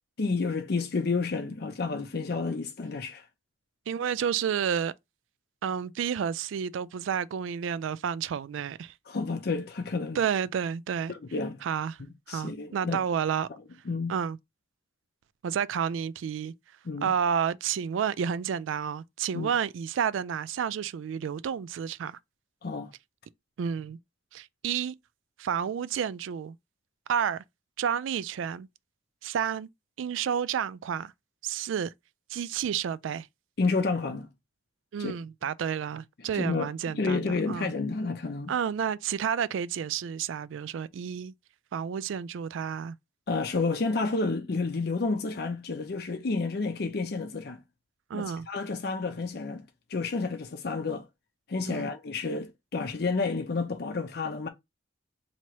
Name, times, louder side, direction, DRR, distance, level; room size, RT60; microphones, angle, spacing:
voice 1, 0.2-3.2 9.1-10.2 11.1-11.6 12.3-13.0 13.9-14.1 16.9-17.1 19.3-19.5 22.6-22.9 33.6-34.3 35.0-35.1 36.3-36.7 36.9-38.5 43.3-47.6 48.1-49.6 49.9-51.0 51.5-54.5, left 4 dB, 55° left, 0.5 m, -30 dB
voice 2, 3.9-4.9 5.6-8.9 10.1-11.1 11.6-12.0 12.3-13.5 14.1-14.4 15.4-16.5 17.0-22.2 23.6-24.0 24.3-24.9 25.4-26.6 27.1-27.4 27.8-28.7 29.2-29.7 30.0-31.1 31.4-31.9 32.3-33.3 34.9-37.7 38.5-41.3 41.7-43.0 48.1-48.5 51.7-51.9, right 8 dB, 80° right, 0.3 m, -30 dB
2.9 x 2.9 x 4.5 m
head